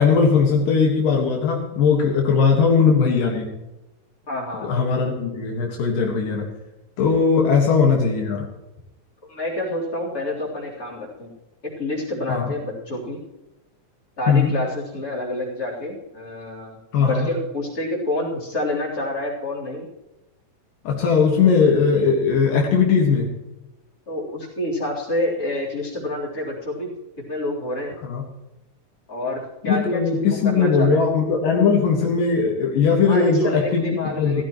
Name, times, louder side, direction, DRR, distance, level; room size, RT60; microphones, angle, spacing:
voice 1, 0.0-3.5 4.6-6.5 7.0-8.4 12.3-12.5 14.3-14.5 16.9-17.3 20.8-23.3 28.0-28.2 29.6-33.9 34.2-34.4, left 5 dB, 75° left, 0 dB, 3.3 m, -19 dB
voice 2, 4.3-4.8 7.4-7.5 9.3-11.3 11.8-13.2 14.2-19.9 24.1-26.9 27.3-28.0 29.1-31.0 33.0-34.4, left 1 dB, 25° left, -5 dB, 4.0 m, -28 dB
16.0 x 15.0 x 3.1 m, 0.97 s
omnidirectional pair, 3.9 m